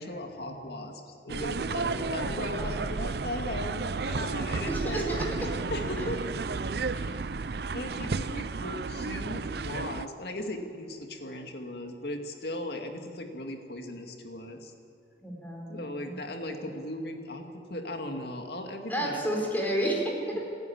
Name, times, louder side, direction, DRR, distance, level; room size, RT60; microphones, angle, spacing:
voice 1, 0.0-5.0 5.7-6.4 6.9-7.2 7.7-14.7 15.7-17.4 17.7-19.5 20.3-20.4, left 1 dB, 65° left, 3 dB, 2.3 m, -37 dB
sound 1, 1.3-10.1, right 4 dB, 60° right, 0.5 m, -32 dB
voice 2, 4.7-5.3 15.2-15.8 16.4-16.7 18.9-20.4, right 1 dB, 10° left, -1 dB, 4.4 m, -31 dB
28.5 x 10.5 x 8.8 m, 2.7 s
head